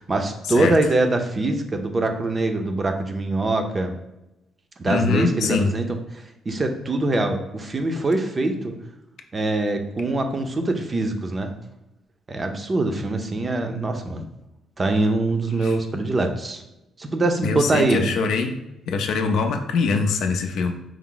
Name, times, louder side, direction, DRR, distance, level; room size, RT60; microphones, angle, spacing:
voice 1, 0.0-3.9 4.8-5.9 6.1-8.7 9.3-11.5 12.3-14.2 14.8-16.6 17.0-18.0, right 2 dB, 30° right, 5 dB, 0.5 m, -23 dB
voice 2, 4.9-5.7 15.6-15.8 17.4-18.5 18.9-20.7, left 4 dB, 80° left, 6 dB, 0.4 m, -23 dB
4.7 x 2.0 x 3.7 m, 0.93 s
cardioid pair, 90°, 0 cm